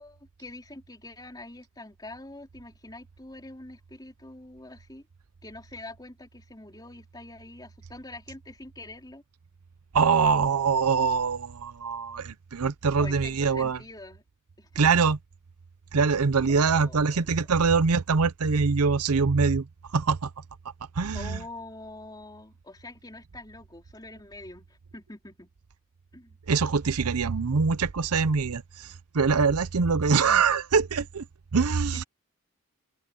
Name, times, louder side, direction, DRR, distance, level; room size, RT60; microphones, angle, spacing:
voice 1, 0.0-5.0 5.4-9.2 13.0-14.2 14.6-14.8 16.5-17.5 21.1-25.5 26.1-26.4 31.9-32.1, left 2 dB, 20° left, 4.1 m, -45 dB
voice 2, 9.9-13.8 14.8-15.2 15.9-20.3 21.0-21.4 26.5-31.2 31.5-32.0, right 5 dB, 85° right, 0.7 m, -24 dB
head